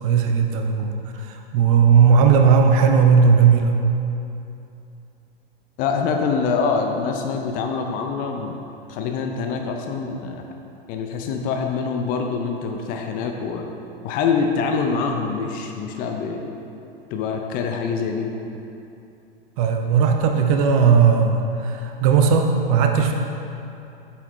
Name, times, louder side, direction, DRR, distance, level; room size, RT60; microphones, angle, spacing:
voice 1, 0.0-3.8 19.6-23.1, right 6 dB, 35° right, 4 dB, 0.5 m, -17 dB
voice 2, 5.8-8.6 8.9-10.4 10.9-13.7 14.0-16.5 17.1-18.3, left 5 dB, 30° left, 3 dB, 0.6 m, -25 dB
8.2 x 5.7 x 3.1 m, 2.8 s
figure-of-eight pair, 95°, 30 cm